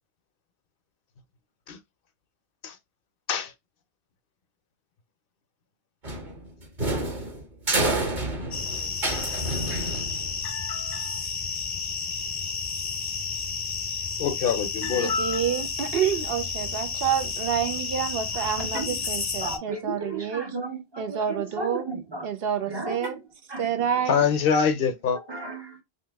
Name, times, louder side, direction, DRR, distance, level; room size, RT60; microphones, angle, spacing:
sound 1, 6.0-10.5, right 2 dB, 50° right, 1.5 m, -29 dB
sound 2, 8.5-19.6, left 5 dB, 35° left, 0.4 m, -31 dB
voice 1, 10.4-11.2 14.2-15.4 24.1-25.2, left 6 dB, 65° left, 0.7 m, -25 dB
voice 2, 14.9-20.4 21.0-21.8 22.2-23.2 23.6-24.2, right 8 dB, 70° right, 0.8 m, -28 dB
voice 3, 18.3-19.1 19.4-22.3 22.6-23.2 23.5-24.3 25.1-25.8, right 3 dB, 30° right, 0.6 m, -35 dB
Car, 18.6-19.1 22.9-23.5, equal, 85° right, 1.4 m, -40 dB
2.9 x 2.7 x 3.3 m
omnidirectional pair, 1.0 m